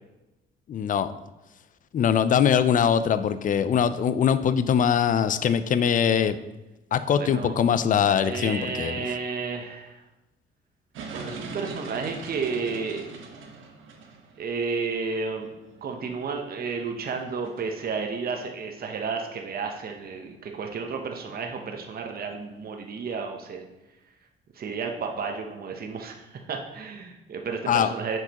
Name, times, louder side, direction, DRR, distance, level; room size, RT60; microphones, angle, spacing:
voice 1, 0.7-1.1 1.9-6.4 6.9-9.0 27.7-27.9, left 8 dB, 40° left, 13 dB, 0.4 m, -22 dB
voice 2, 7.2-7.5 8.1-10.0 11.1-13.0 14.4-15.5 15.8-23.7 24.5-28.2, right 5 dB, 50° right, 3 dB, 0.8 m, -32 dB
sound 1, 10.9-23.2, right 4 dB, 80° right, 1.0 m, -44 dB
7.6 x 4.9 x 2.9 m, 1.0 s
cardioid pair, 90°, 20 cm